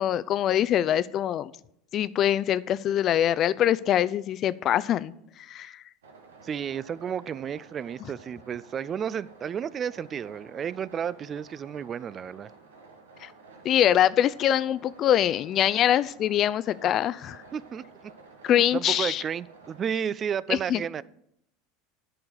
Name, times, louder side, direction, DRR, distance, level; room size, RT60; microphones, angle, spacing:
voice 1, 0.0-1.5 1.9-5.1 5.5-5.7 13.2-13.3 13.6-17.4 18.4-19.2 20.5-20.8, left 11 dB, 45° left, 17 dB, 0.4 m, -24 dB
sound 1, 6.0-19.8, right 4 dB, 85° right, 1.4 m, -52 dB
voice 2, 6.4-12.5 17.5-18.1 18.5-21.0, right 8 dB, 35° right, 20 dB, 0.4 m, -32 dB
10.5 x 4.5 x 6.7 m, 0.75 s
hypercardioid pair, 80°, 0 cm